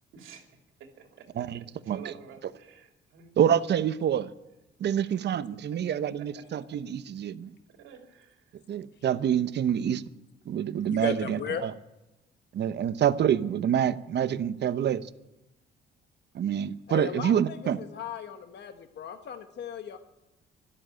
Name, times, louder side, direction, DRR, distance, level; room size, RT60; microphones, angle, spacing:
voice 1, 0.1-3.3 5.0-5.1 6.2-6.6 7.7-8.6, right 7 dB, 90° right, 2.8 m, -51 dB
voice 2, 3.4-4.3 4.8-7.5 8.7-10.0 10.5-11.7 12.5-15.1 16.3-17.8, right 9 dB, 60° right, 0.8 m, -27 dB
voice 3, 10.9-11.6 16.9-20.0, left 8 dB, 60° left, 1.1 m, -36 dB
13.0 x 12.0 x 9.0 m
cardioid pair, 90°, 20 cm